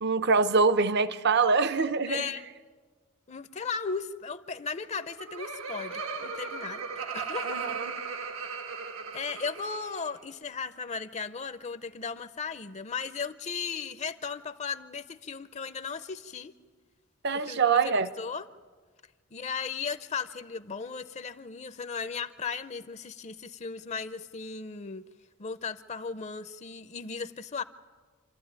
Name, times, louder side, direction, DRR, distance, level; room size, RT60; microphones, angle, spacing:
voice 1, 0.0-2.2 7.4-8.0 17.2-18.1, right 4 dB, 50° right, 13 dB, 0.7 m, -24 dB
voice 2, 2.1-2.4 3.3-7.6 9.1-16.5 17.3-18.5 19.3-25.1 25.4-27.6, left 5 dB, 35° left, 13 dB, 0.6 m, -36 dB
Laughter, 4.9-10.1, right 5 dB, 80° right, 1.4 m, -37 dB
27.5 x 13.5 x 9.5 m, 1.5 s
head